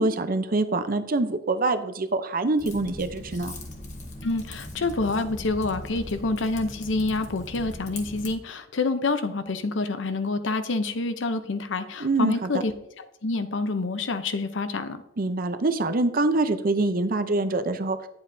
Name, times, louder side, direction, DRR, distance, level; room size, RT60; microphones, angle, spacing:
voice 1, 0.0-3.6 12.0-12.5 15.2-18.0, right 2 dB, 50° right, 10 dB, 0.7 m, -25 dB
Typing, 2.6-8.3, left 1 dB, 40° left, 1.3 m, -39 dB
voice 2, 4.2-15.0, left 3 dB, 85° left, 10 dB, 0.7 m, -27 dB
10.5 x 7.9 x 2.7 m, 0.82 s
head